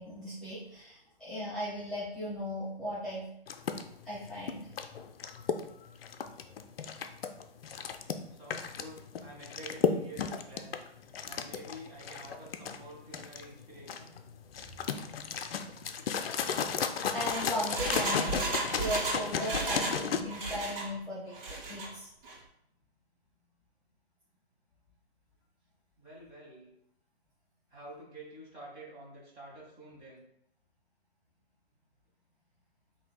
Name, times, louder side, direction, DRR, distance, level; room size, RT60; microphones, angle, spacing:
voice 1, 0.0-3.2 4.0-4.7 14.6-14.8 17.1-18.5 18.8-22.1, equal, ahead, -13 dB, 0.8 m, -37 dB
sound 1, 3.5-20.2, left 7 dB, 65° left, 0.5 m, -34 dB
voice 2, 8.3-10.8 11.3-14.1 26.0-26.7 27.7-30.2, right 1 dB, 20° right, -5 dB, 1.3 m, -49 dB
Engine, 17.0-20.0 20.3-20.9 21.3-21.9 22.2-22.3, right 2 dB, 60° right, 1.4 m, -34 dB
6.7 x 2.7 x 2.2 m, 0.75 s
hypercardioid pair, 135°, 31 cm